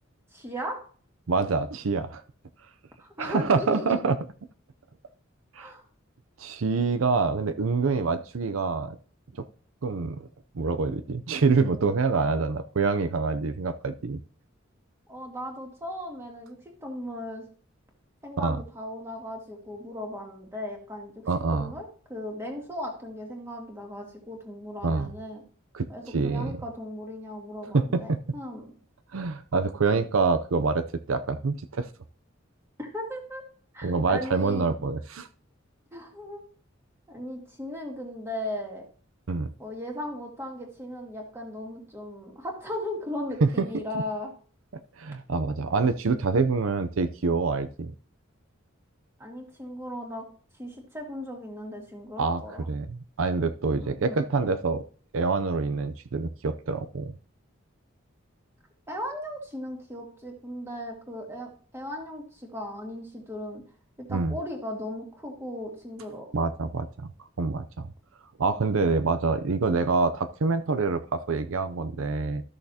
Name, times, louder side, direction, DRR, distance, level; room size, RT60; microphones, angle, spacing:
voice 1, 0.3-0.8 3.0-4.0 5.6-5.8 15.1-17.5 18.2-25.4 25.9-28.7 32.8-33.4 33.7-34.7 35.9-36.4 37.1-38.8 39.6-44.3 49.2-50.2 50.6-52.7 53.8-54.2 58.9-63.6 64.0-66.3, left 1 dB, 15° right, 0 dB, 2.1 m, -37 dB
voice 2, 1.3-2.2 3.2-4.2 5.5-5.7 6.4-9.0 9.4-9.5 9.8-10.2 10.5-14.2 18.4-18.6 21.3-21.7 24.8-25.1 25.7-26.6 27.7-28.2 29.1-31.9 33.8-35.3 39.3-39.5 43.4-43.7 44.7-47.9 52.2-52.4 52.7-54.8 55.1-57.1 64.1-64.4 66.3-67.1 67.4-67.9 68.4-72.4, right 4 dB, 90° right, 11 dB, 0.6 m, -26 dB
13.5 x 6.4 x 2.8 m, 0.43 s
head